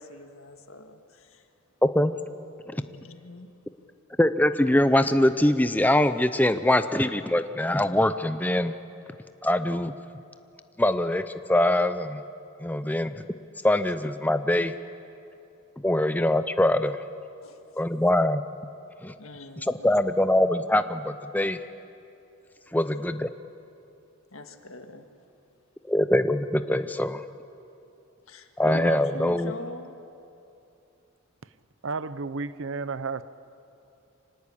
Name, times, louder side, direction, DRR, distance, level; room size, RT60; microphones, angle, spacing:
voice 1, 0.0-1.5 2.9-3.5 17.4-17.6 19.2-20.0 24.3-25.1 28.3-30.0, left 1 dB, 80° left, 1.6 m, -42 dB
voice 2, 1.8-2.1 2.7-2.8 4.2-8.7 9.4-9.9 10.8-12.2 12.6-13.2 13.6-14.7 15.8-17.0 17.8-18.4 19.0-19.1 19.7-21.6 22.7-23.3 25.9-27.2 28.6-29.5, left 1 dB, 10° left, 0.5 m, -23 dB
voice 3, 31.8-33.2, right 4 dB, 65° right, 0.7 m, -32 dB
26.0 x 19.0 x 8.5 m
head